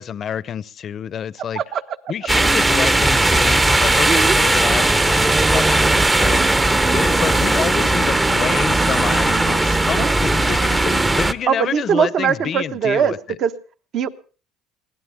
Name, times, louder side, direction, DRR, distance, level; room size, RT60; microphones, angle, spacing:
voice 1, 0.0-1.6 2.1-6.6 6.9-13.2, left 8 dB, 40° left, 0.7 m, -28 dB
voice 2, 1.5-2.0 4.1-4.4 10.0-10.1 11.5-13.5 13.9-14.1, right 7 dB, 50° right, 1.1 m, -21 dB
sound 1, 2.3-11.3, right 2 dB, 15° right, 0.8 m, -17 dB
22.5 x 16.5 x 3.6 m
supercardioid pair, 110°, 0 cm